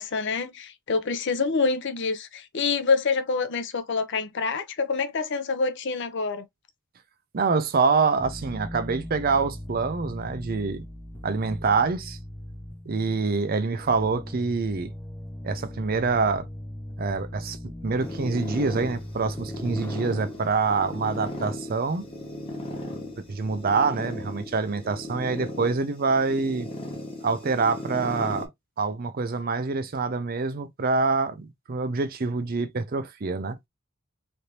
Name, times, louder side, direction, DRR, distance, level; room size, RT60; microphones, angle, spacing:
voice 1, 0.0-6.4, left 4 dB, 60° left, 0.6 m, -26 dB
voice 2, 7.3-10.9 11.2-12.2 12.9-14.9 15.4-16.5 17.0-22.1 23.3-26.7 27.2-28.5 28.8-33.6, right 4 dB, 45° right, 0.5 m, -26 dB
sound 1, 8.2-25.6, left 1 dB, 10° left, 0.6 m, -41 dB
sound 2, 18.0-28.5, left 1 dB, 25° left, 1.0 m, -37 dB
3.3 x 2.7 x 2.7 m
head